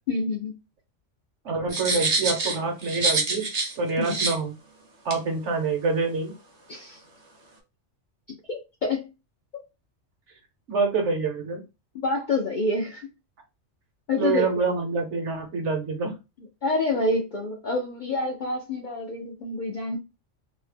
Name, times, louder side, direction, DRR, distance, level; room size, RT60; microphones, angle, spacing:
voice 1, 0.1-0.6 4.0-4.2 6.7-7.0 8.5-9.1 11.9-13.1 14.1-14.7 16.6-20.0, left 2 dB, 65° left, 2 dB, 0.5 m, -27 dB
voice 2, 1.4-3.5 3.8-4.5 5.0-6.3 10.7-11.6 14.2-16.1, right 4 dB, 70° right, 3 dB, 1.1 m, -26 dB
sound 1, 1.7-3.7 4.0-4.3 5.1-5.2, right 3 dB, 40° right, 0.6 m, -26 dB
2.7 x 2.0 x 3.1 m, 0.27 s
omnidirectional pair, 1.3 m